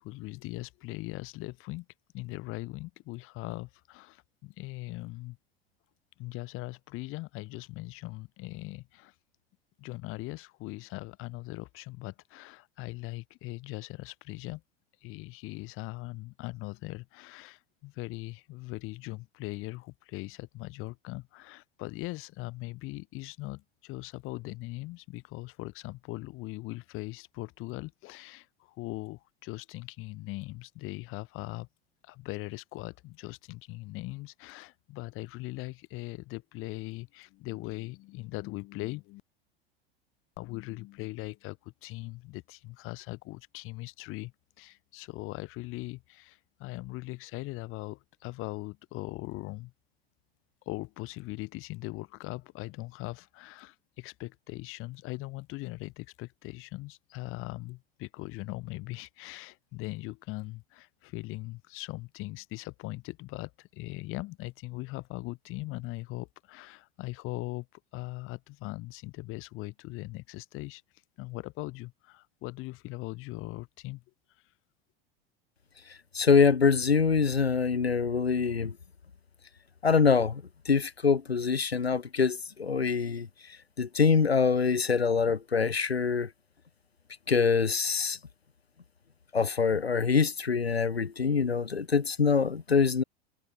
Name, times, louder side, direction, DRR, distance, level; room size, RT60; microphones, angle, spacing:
voice 1, 0.0-1.9 2.1-5.4 6.2-9.1 9.8-14.6 15.0-31.7 32.0-39.2 40.4-44.3 44.6-49.7 50.7-67.7 67.9-70.8 71.2-74.0, left 21 dB, 45° left, 4.2 m, -40 dB
voice 2, 76.1-78.7 79.8-83.3 83.8-86.3 87.3-88.2 89.3-93.0, left 5 dB, 85° left, 0.7 m, -25 dB
figure-of-eight pair, 80°, 31 cm